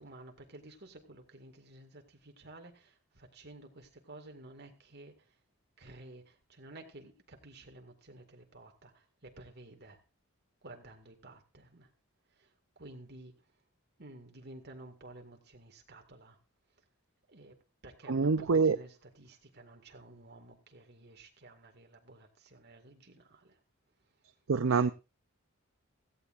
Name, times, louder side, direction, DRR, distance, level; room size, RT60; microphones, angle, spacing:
voice 1, 0.0-5.4 5.8-10.0 10.6-11.9 12.3-13.4 14.0-16.4 17.3-17.6 17.8-23.6, right 2 dB, 50° right, 2.1 m, -53 dB
voice 2, 18.1-18.8 24.5-24.9, right 4 dB, 65° right, 0.6 m, -25 dB
16.5 x 15.0 x 2.6 m
head